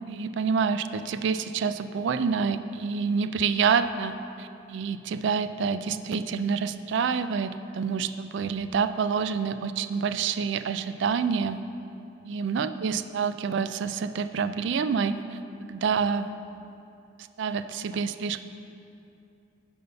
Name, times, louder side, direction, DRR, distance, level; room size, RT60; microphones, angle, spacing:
voice 1, 0.1-11.6 12.2-15.2 15.7-16.3 17.4-18.4, right 6 dB, 60° right, 11 dB, 0.3 m, -27 dB
9.5 x 5.5 x 5.4 m, 2.8 s
head